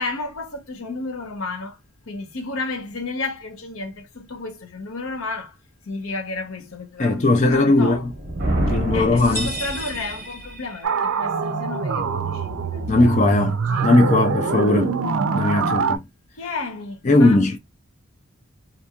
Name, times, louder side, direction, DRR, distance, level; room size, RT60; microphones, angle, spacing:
voice 1, 0.0-1.8 2.1-5.5 5.9-8.1 8.7-13.9 16.4-17.6, left 3 dB, 75° left, 0.8 m, -32 dB
voice 2, 7.0-8.1 8.7-9.5 12.9-15.0 15.3-16.0 17.0-17.6, left 2 dB, 35° left, 0.5 m, -18 dB
Thunder, 8.0-10.3, right 1 dB, 45° right, 1.0 m, -26 dB
sound 1, 9.2-11.1, right 1 dB, 10° left, 1.4 m, -33 dB
sound 2, 10.8-16.0, right 5 dB, 70° right, 0.4 m, -24 dB
2.8 x 2.6 x 2.3 m
head